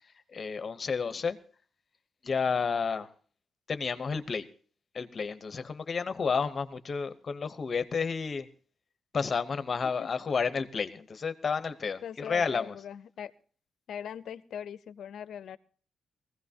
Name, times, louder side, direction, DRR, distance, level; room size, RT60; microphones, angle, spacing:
voice 1, 0.3-1.4 2.2-3.1 3.7-4.5 4.9-8.5 9.1-12.7, left 5 dB, 30° left, 0.8 m, -31 dB
voice 2, 12.0-13.3 13.9-15.6, left 8 dB, 65° left, 0.6 m, -41 dB
21.5 x 16.0 x 2.8 m
wide cardioid pair, 180°, 0 cm